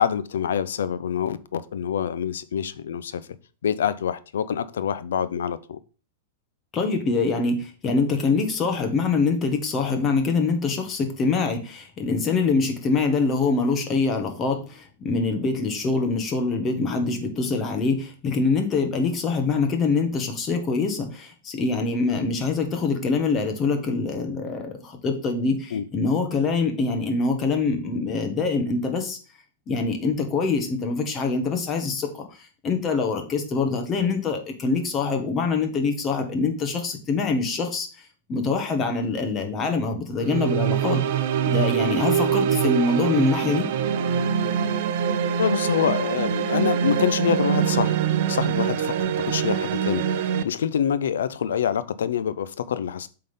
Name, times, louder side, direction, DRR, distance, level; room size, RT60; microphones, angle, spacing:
voice 1, 0.0-3.3 3.6-5.8 25.7-25.8 45.4-48.0 48.3-53.1, left 8 dB, 90° left, 0.6 m, -26 dB
voice 2, 6.7-29.2 29.7-37.9 38.3-41.0 41.5-43.7, left 4 dB, 25° left, 1.5 m, -24 dB
sound 1, 40.2-50.4, right 8 dB, 60° right, 0.6 m, -24 dB
7.6 x 3.9 x 5.3 m
supercardioid pair, 140°, 0 cm